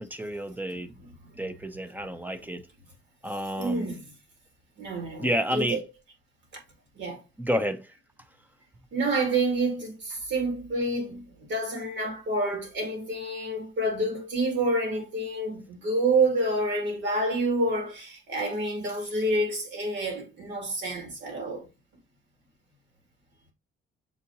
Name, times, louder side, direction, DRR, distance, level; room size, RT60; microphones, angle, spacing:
voice 1, 0.0-0.9 1.4-2.6 3.2-3.9 5.2-5.8 7.4-7.9, equal, 10° right, 0.6 m, -30 dB
voice 2, 0.7-1.5 2.0-2.3 3.6-4.1 4.8-5.8 6.9-7.2 8.9-21.7, right 2 dB, 65° right, 2.3 m, -28 dB
6.9 x 2.5 x 2.8 m
cardioid pair, 90°, 20 cm